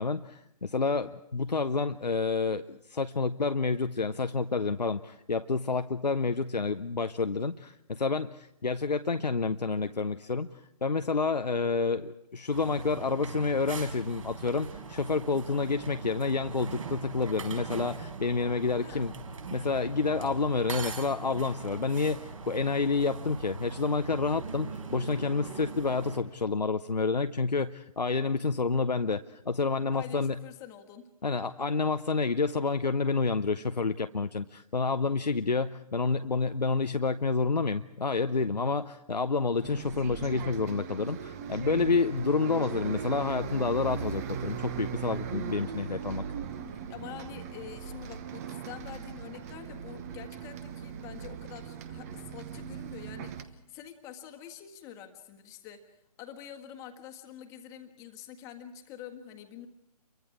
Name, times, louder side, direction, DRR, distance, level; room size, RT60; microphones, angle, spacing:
voice 1, 0.0-19.1 19.5-30.4 31.2-46.2, left 4 dB, 80° left, 10 dB, 0.7 m, -29 dB
sound 1, 12.5-26.2, right 4 dB, 50° right, 4.6 m, -41 dB
voice 2, 18.8-19.1 29.9-31.1 46.7-59.7, left 9 dB, 15° left, 5 dB, 1.6 m, -46 dB
Bus, 39.6-53.4, right 8 dB, 25° right, 1.1 m, -39 dB
28.5 x 23.5 x 4.8 m, 0.81 s
figure-of-eight pair, 140°, 21 cm